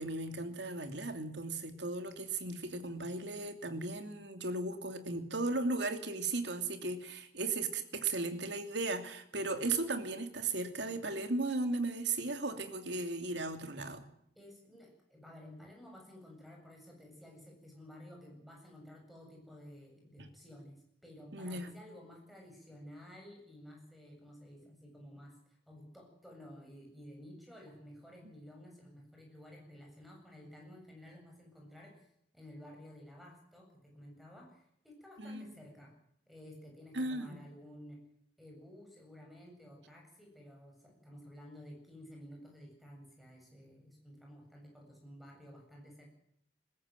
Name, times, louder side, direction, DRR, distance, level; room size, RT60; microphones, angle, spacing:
voice 1, 0.0-14.0 20.2-20.3 21.3-21.7 35.2-35.5 36.9-37.4, right 3 dB, 70° right, 7 dB, 2.8 m, -36 dB
voice 2, 14.4-32.1 32.3-35.9 36.3-38.0 38.4-46.1, equal, ahead, 0 dB, 7.7 m, -53 dB
20.5 x 16.0 x 9.3 m, 0.73 s
head